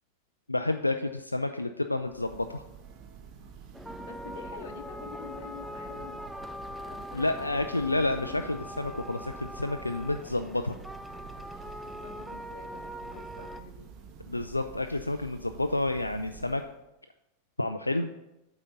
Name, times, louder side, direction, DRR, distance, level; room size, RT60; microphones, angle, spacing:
voice 1, 0.5-2.6 7.1-10.8 14.3-16.6 17.6-18.1, left 2 dB, 85° left, 7 dB, 0.3 m, -30 dB
Church bell, 1.9-16.9, right 7 dB, 35° right, 0.9 m, -49 dB
sound 1, 3.7-13.6, equal, 5° right, 0.4 m, -42 dB
voice 2, 3.9-8.5 11.6-13.9, left 6 dB, 55° left, 6 dB, 0.9 m, -48 dB
8.6 x 3.9 x 5.6 m, 0.92 s
figure-of-eight pair, 90°, 0 cm